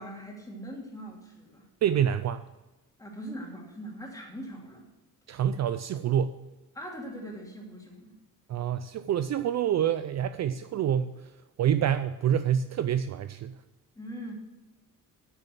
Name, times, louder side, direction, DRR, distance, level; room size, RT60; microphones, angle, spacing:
voice 1, 0.0-1.6 3.0-4.9 6.7-8.1 14.0-14.3, equal, 10° left, -1 dB, 2.6 m, -41 dB
voice 2, 1.8-2.4 5.3-6.4 8.5-11.3 11.6-13.6, right 9 dB, 50° right, 11 dB, 0.4 m, -27 dB
8.9 x 6.7 x 7.6 m, 1.1 s
cardioid pair, 125°, 35 cm